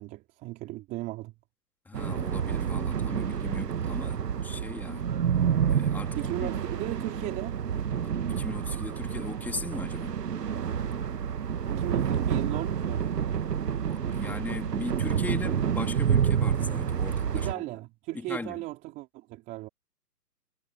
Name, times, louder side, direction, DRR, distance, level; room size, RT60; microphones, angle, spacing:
voice 1, 0.0-1.3 6.2-7.6 11.7-13.2 17.3-19.7, right 19 dB, 15° right, 3.6 m, -36 dB
voice 2, 1.8-5.1 5.7-6.5 8.0-10.2 13.9-17.7 18.1-18.6, left 3 dB, 5° left, 2.9 m, -39 dB
sound 1, 1.9-17.5, right 8 dB, 75° right, 1.4 m, -29 dB
hypercardioid pair, 160°, 48 cm